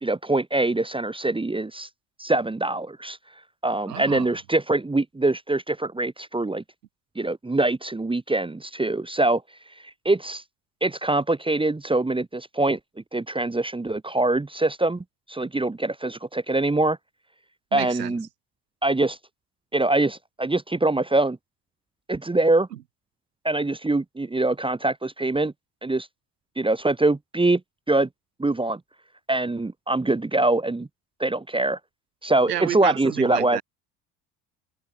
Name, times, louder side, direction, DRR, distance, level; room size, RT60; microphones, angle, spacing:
voice 1, 0.0-1.9 2.2-3.2 3.6-6.6 7.1-9.4 9.8-10.4 10.8-12.8 13.1-17.0 17.7-18.2 18.8-19.2 19.7-21.4 22.1-22.7 23.4-25.5 25.8-26.1 26.6-27.6 27.9-28.1 28.4-28.8 29.3-30.9 31.2-31.8 32.2-33.6, right 2 dB, 10° right, 1.3 m, -23 dB
voice 2, 3.9-4.3 17.7-18.1 22.7-22.8 32.5-33.6, right 12 dB, 85° right, 6.9 m, -31 dB
hypercardioid pair, 65°, 46 cm